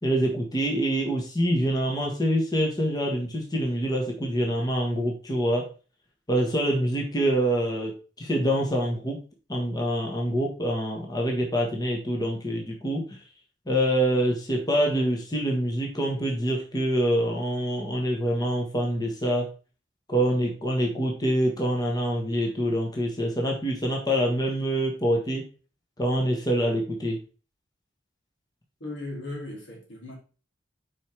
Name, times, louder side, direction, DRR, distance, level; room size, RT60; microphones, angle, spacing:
voice 1, 0.0-5.7 6.3-7.9 8.2-9.2 9.5-13.0 13.7-19.5 20.1-25.4 26.0-27.2, equal, 20° left, 1.4 m, -25 dB
voice 2, 28.8-30.1, left 2 dB, 80° left, 2.7 m, -37 dB
5.4 x 5.0 x 4.5 m
head